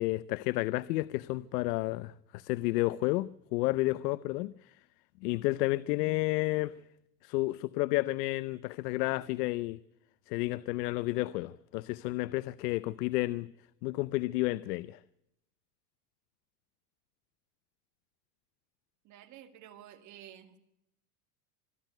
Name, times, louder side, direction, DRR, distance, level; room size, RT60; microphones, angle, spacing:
voice 1, 0.0-4.8 5.2-6.7 7.2-9.8 10.3-13.5 13.8-15.0, left 19 dB, 70° left, 0.8 m, -31 dB
voice 2, 19.0-20.6, right 11 dB, 35° right, 2.2 m, -51 dB
25.5 x 12.5 x 9.2 m
supercardioid pair, 155°, 48 cm